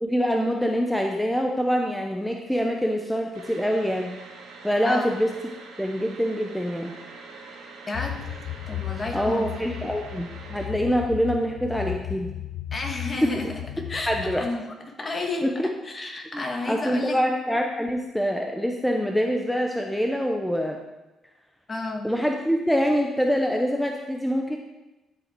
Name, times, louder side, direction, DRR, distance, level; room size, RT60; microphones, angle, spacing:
voice 1, 0.0-4.1 4.6-5.3 5.8-6.9 9.1-12.3 13.2-13.3 14.1-14.4 15.4-15.7 16.3-20.8 22.0-24.6, equal, ahead, 2 dB, 0.8 m, -25 dB
sound 1, 3.3-10.7, right 4 dB, 85° right, 1.9 m, -44 dB
sound 2, 7.9-14.5, left 12 dB, 75° left, 0.4 m, -35 dB
voice 2, 7.9-9.9 12.7-13.6 13.9-17.2 21.7-22.1, left 2 dB, 35° left, 3 dB, 1.6 m, -32 dB
12.0 x 5.5 x 4.5 m, 1.0 s
cardioid pair, 90°, 0 cm